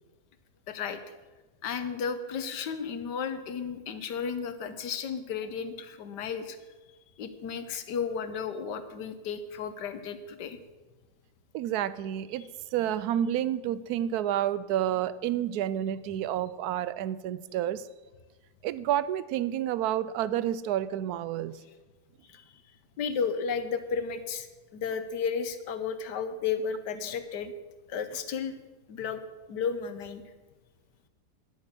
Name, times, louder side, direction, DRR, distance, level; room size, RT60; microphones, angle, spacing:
voice 1, 0.7-1.0 1.6-6.6 7.2-10.6 22.3-22.4 23.0-24.5 24.7-27.5 27.9-28.5 28.9-29.2 29.5-30.2, left 6 dB, 85° left, 10 dB, 1.6 m, -33 dB
voice 2, 11.5-17.8 18.6-21.6, right 11 dB, 75° right, 16 dB, 1.1 m, -30 dB
10.5 x 8.8 x 7.1 m, 1.2 s
omnidirectional pair, 1.8 m